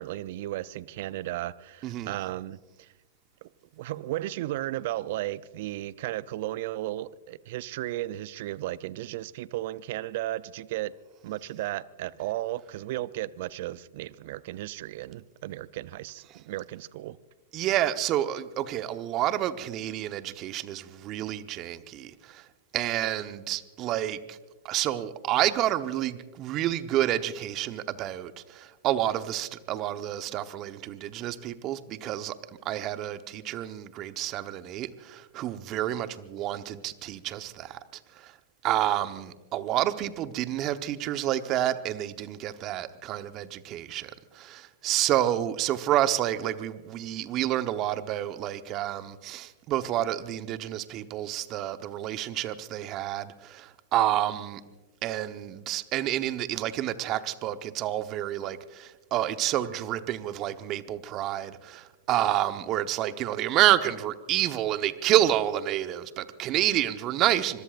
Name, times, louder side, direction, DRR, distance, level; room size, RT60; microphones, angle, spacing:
voice 1, 0.0-2.9 3.4-10.9 11.2-17.2, right 15 dB, 60° right, 0.5 m, -35 dB
voice 2, 1.8-2.1 17.5-22.4 22.7-24.4 24.6-32.4 32.6-37.8 38.2-38.3 38.6-54.6 55.0-67.6, right 13 dB, 40° right, 1.0 m, -29 dB
25.5 x 22.0 x 2.5 m
hypercardioid pair, 105°, 0 cm